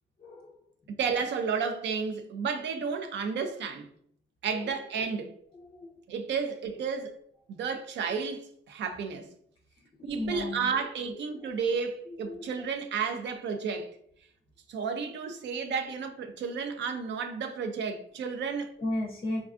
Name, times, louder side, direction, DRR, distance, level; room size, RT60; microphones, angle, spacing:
voice 1, 0.2-0.6 4.5-4.7 5.7-5.9 10.1-10.7 12.3-12.5 18.8-19.4, left 1 dB, 30° left, 0.5 m, -34 dB
voice 2, 1.0-3.9 4.4-5.4 6.1-7.2 7.6-9.3 10.0-13.9 14.7-18.7, right 5 dB, 65° right, 0.5 m, -32 dB
3.5 x 2.2 x 2.4 m
cardioid pair, 90°, 20 cm